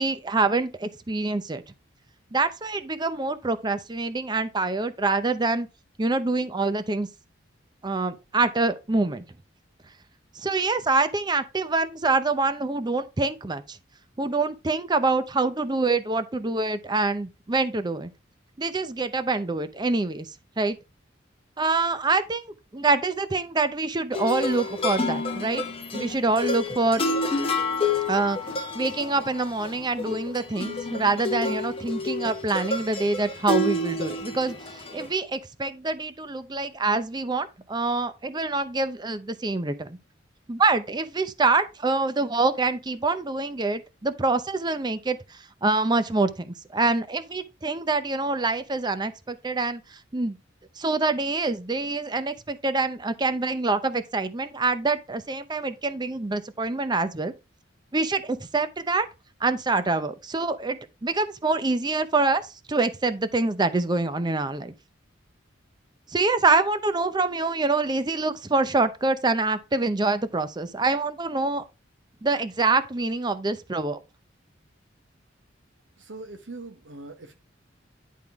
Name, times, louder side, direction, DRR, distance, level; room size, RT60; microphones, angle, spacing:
voice 1, 0.0-1.6 2.3-5.7 6.0-7.1 7.8-9.2 10.4-13.8 14.2-18.1 18.6-20.3 20.6-20.8 21.6-22.4 22.7-25.6 25.9-27.0 28.1-28.4 28.7-34.5 34.9-40.0 40.5-50.4 50.8-57.3 57.9-59.1 59.4-64.7 66.1-71.6 72.2-74.0, right 3 dB, 20° right, 0.6 m, -25 dB
sound 1, 24.1-35.1, left 2 dB, 30° left, 1.2 m, -29 dB
voice 2, 76.0-77.3, right 2 dB, 75° right, 1.0 m, -41 dB
10.5 x 3.7 x 4.6 m
head